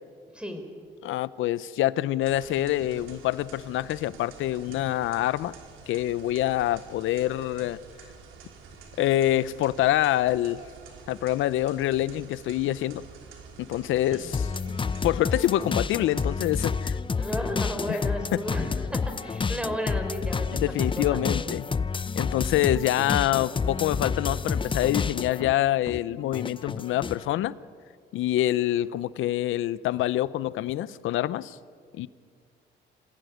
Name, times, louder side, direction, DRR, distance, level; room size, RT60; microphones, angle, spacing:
voice 1, 0.3-0.7 14.1-14.3 17.2-21.6, equal, 5° right, 6 dB, 4.1 m, -34 dB
voice 2, 1.0-5.5 5.9-7.8 9.0-10.6 11.1-13.0 13.6-14.5 15.0-17.0 17.9-18.0 20.5-21.6 22.2-27.6 28.1-31.6 31.9-32.1, left 14 dB, 85° left, 18 dB, 0.7 m, -26 dB
sound 1, 2.2-16.9, right 5 dB, 90° right, 3.2 m, -48 dB
Agent Movie Music (Inspired by James Bond Theme), 14.3-25.5 25.9-27.2, left 5 dB, 25° left, 0.6 m, -29 dB
26.5 x 16.0 x 9.4 m, 2.1 s
cardioid pair, 90°, 20 cm